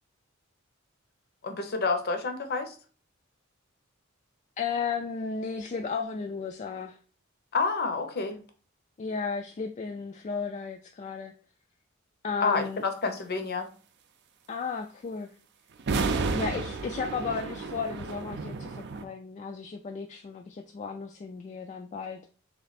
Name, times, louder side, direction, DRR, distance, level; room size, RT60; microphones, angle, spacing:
voice 1, 1.4-2.7 7.5-8.4 12.4-13.7, left 4 dB, 50° left, 7 dB, 0.7 m, -29 dB
voice 2, 4.6-7.0 9.0-11.3 12.2-12.8 14.5-15.3 16.3-22.2, left 5 dB, 35° left, 4 dB, 0.3 m, -34 dB
sound 1, 15.8-19.0, right 4 dB, 55° right, 0.5 m, -31 dB
3.4 x 3.2 x 4.0 m, 0.40 s
head